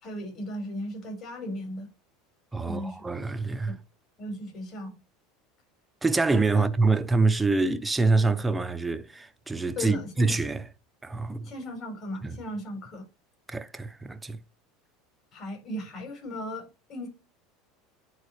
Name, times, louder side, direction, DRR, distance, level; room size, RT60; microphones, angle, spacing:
voice 1, 0.0-1.9 2.6-3.0 3.7-3.8 4.2-5.0 6.5-6.7 9.8-10.4 11.4-13.0 15.3-17.1, left 1 dB, 45° left, 4.4 m, -36 dB
voice 2, 2.5-3.8 6.0-10.7 11.0-11.5 12.2-12.4 13.5-14.4, right 3 dB, 10° right, 0.7 m, -25 dB
10.0 x 3.9 x 3.2 m
supercardioid pair, 115°, 0 cm